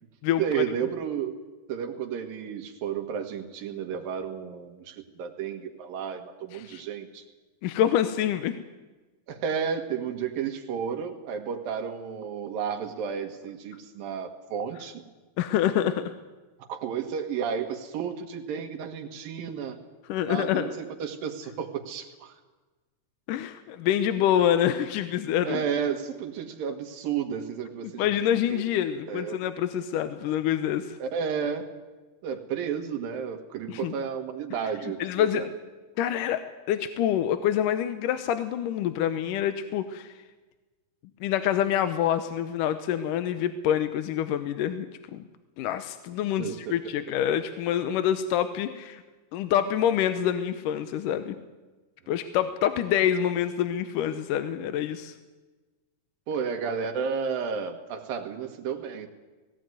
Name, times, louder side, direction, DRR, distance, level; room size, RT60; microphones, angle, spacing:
voice 1, 0.4-7.3 9.3-15.0 16.7-19.8 20.3-22.3 25.5-28.1 28.5-28.6 29.1-29.4 31.0-31.7 32.2-35.5 46.4-47.2 56.3-59.1, right 7 dB, 80° right, 5 dB, 3.4 m, -32 dB
voice 2, 7.6-8.6 15.4-16.1 20.1-20.7 23.3-25.6 28.0-31.0 33.7-33.9 34.8-35.4 36.0-40.1 41.2-44.9 45.1-45.2 45.6-49.0 49.3-51.4 52.1-55.1, left 10 dB, 75° left, 10 dB, 2.3 m, -26 dB
18.5 x 17.5 x 9.3 m, 1.2 s
omnidirectional pair, 4.0 m